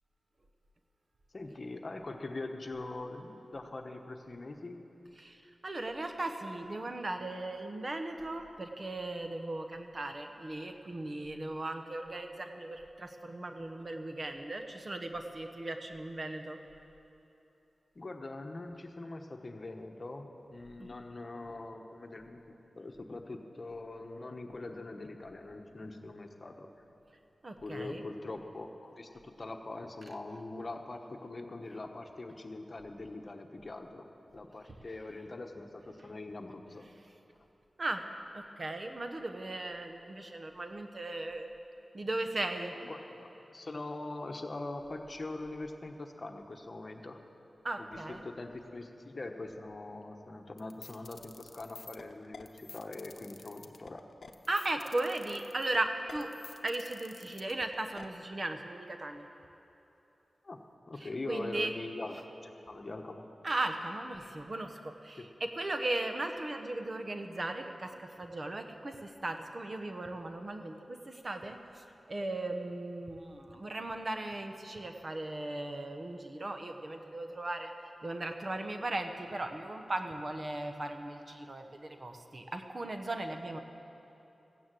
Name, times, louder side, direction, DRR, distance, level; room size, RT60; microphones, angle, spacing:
voice 1, 1.3-4.9 17.9-26.7 27.6-34.1 34.3-36.9 42.7-47.2 47.8-54.0 60.4-60.6 60.9-63.2 65.2-65.3, left 2 dB, 45° left, 4 dB, 1.1 m, -43 dB
voice 2, 5.2-16.6 20.8-20.9 27.4-28.0 37.8-38.0 38.3-41.5 41.9-42.7 47.6-48.2 54.5-56.3 56.6-59.3 61.0-61.7 63.4-77.7 78.0-83.6, right 2 dB, 45° right, 6 dB, 1.0 m, -37 dB
sound 1, 50.6-58.1, left 4 dB, 75° left, 0.8 m, -50 dB
15.5 x 9.4 x 7.7 m, 2.9 s
wide cardioid pair, 75°, 0 cm